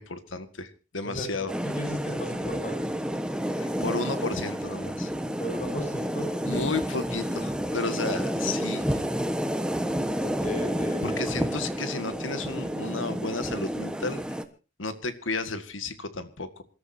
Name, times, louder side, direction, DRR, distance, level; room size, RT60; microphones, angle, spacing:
voice 1, 0.0-1.5 3.6-5.1 6.4-9.0 11.0-14.2 14.8-16.6, left 3 dB, 90° left, 10 dB, 1.9 m, -33 dB
voice 2, 1.0-2.9 5.4-6.3 10.2-11.3, equal, 40° left, 1 dB, 6.7 m, -36 dB
sound 1, 1.5-14.4, equal, 5° right, 1.3 m, -30 dB
27.0 x 13.5 x 2.8 m, 0.33 s
head